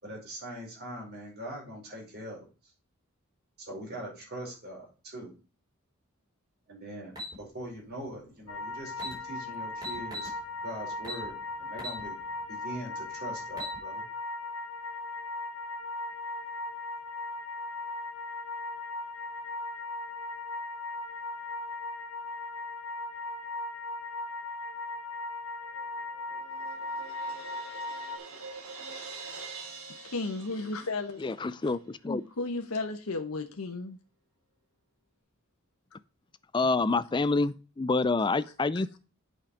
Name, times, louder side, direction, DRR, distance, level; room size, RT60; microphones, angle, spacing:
voice 1, 0.0-2.7 3.6-5.3 6.7-10.3 10.6-12.1 12.5-14.0, right 1 dB, 50° right, 4.9 m, -42 dB
sound 1, 7.1-7.3 8.6-8.7 8.9-9.2 9.8-10.3 11.0-11.3 11.8-12.0 12.4-12.5 13.3-13.8, left 1 dB, 20° right, 3.8 m, -38 dB
sound 2, 8.5-28.2, left 2 dB, 70° left, 1.5 m, -38 dB
Crash cymbal, 25.7-31.5, right 4 dB, 80° right, 3.1 m, -45 dB
voice 2, 30.0-31.3 31.6-31.7 32.4-34.0 38.4-38.8, left 3 dB, 85° left, 1.0 m, -34 dB
voice 3, 31.2-32.2 36.5-39.0, left 3 dB, 20° left, 0.4 m, -27 dB
8.2 x 5.3 x 5.0 m
head